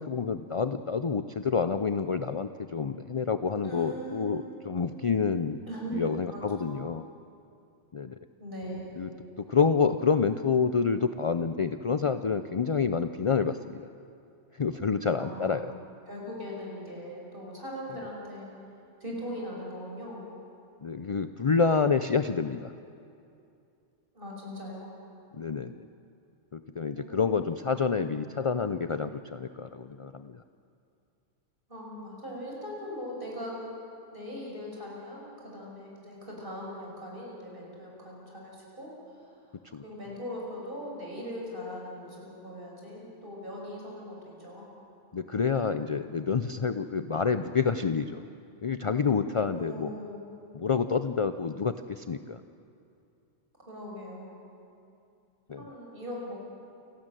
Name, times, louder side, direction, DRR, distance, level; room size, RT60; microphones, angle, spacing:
voice 1, 0.0-5.6 5.9-7.0 7.9-8.2 9.0-9.1 9.4-13.9 14.5-15.7 20.8-22.7 25.3-25.8 26.5-30.4 39.7-39.8 45.1-48.2 48.6-49.9 50.5-52.4 55.5-55.7, left 5 dB, 45° left, 10 dB, 0.4 m, -28 dB
voice 2, 3.6-4.7 5.7-5.9 6.3-6.7 8.4-9.0 15.1-15.7 16.1-18.5 19.0-20.2 24.1-24.9 26.9-27.5 31.7-33.6 34.1-38.9 39.2-39.3 39.8-44.7 49.6-50.3 53.7-54.3 55.6-56.4, equal, 45° right, -3 dB, 6.2 m, -40 dB
28.5 x 12.5 x 9.1 m, 2.6 s
omnidirectional pair, 1.3 m